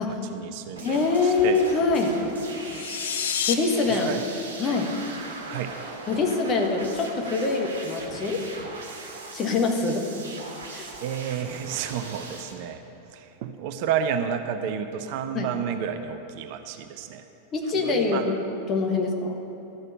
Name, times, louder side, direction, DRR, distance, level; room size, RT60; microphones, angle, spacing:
voice 1, 0.0-1.6 3.9-4.2 5.5-5.8 11.0-12.8 13.1-17.3 17.7-18.3, right 8 dB, 45° right, 8 dB, 0.7 m, -31 dB
voice 2, 0.8-2.2 3.5-4.1 4.6-4.9 6.1-8.4 9.3-10.1 10.7-10.9 15.3-15.5 17.5-18.3 18.7-19.4, left 4 dB, 30° left, 2 dB, 1.5 m, -24 dB
sound 1, 0.8-12.5, right 3 dB, 65° right, 1.9 m, -39 dB
sound 2, 2.5-3.5, left 8 dB, 60° left, 0.7 m, -29 dB
13.0 x 6.6 x 8.8 m, 3.0 s
figure-of-eight pair, 90°, 0 cm